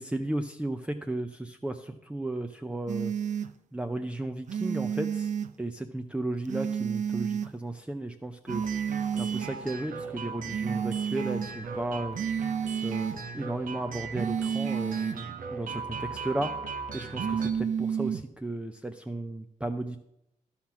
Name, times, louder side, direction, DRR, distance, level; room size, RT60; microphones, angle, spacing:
voice 1, 0.0-3.1 3.7-5.3 5.6-8.6 9.2-12.2 12.8-16.5 16.9-20.0, right 1 dB, 10° right, 5 dB, 0.5 m, -34 dB
sound 1, 2.9-3.5 4.5-5.5 6.5-7.5 8.5-9.5 10.5-11.5 12.1-13.2 14.1-15.2 17.2-18.2, right 7 dB, 60° right, 0.5 m, -30 dB
sound 2, 8.5-17.5, right 5 dB, 80° right, 1.0 m, -38 dB
11.5 x 5.8 x 5.9 m, 0.81 s
cardioid pair, 90°, 14 cm